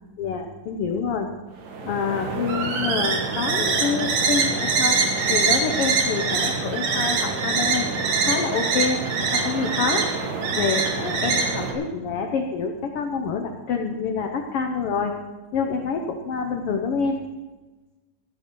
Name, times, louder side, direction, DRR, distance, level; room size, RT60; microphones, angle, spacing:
voice 1, 0.2-1.3 1.8-5.0 5.3-9.0 9.3-10.0 10.6-15.1 15.5-17.2, left 5 dB, 80° left, 4 dB, 1.3 m, -27 dB
sound 1, 1.7-11.7, right 4 dB, 75° right, 3.3 m, -24 dB
17.5 x 13.0 x 3.8 m, 1.2 s
omnidirectional pair, 3.8 m